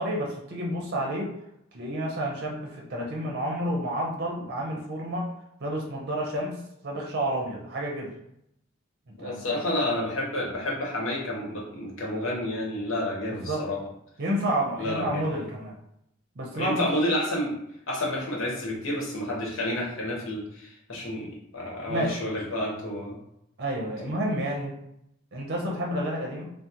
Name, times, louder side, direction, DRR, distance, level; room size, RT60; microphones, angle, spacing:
voice 1, 0.0-1.3 1.7-5.3 5.6-8.1 9.2-9.6 13.3-13.7 14.2-15.7 16.4-16.9 21.9-22.3 23.6-24.8 25.3-26.5, right 1 dB, 50° right, -1 dB, 0.6 m, -30 dB
voice 2, 9.2-13.8 14.8-15.3 16.5-17.5 17.9-23.2 24.0-24.1, left 1 dB, 65° left, -2 dB, 1.0 m, -30 dB
2.8 x 2.0 x 3.6 m, 0.77 s
head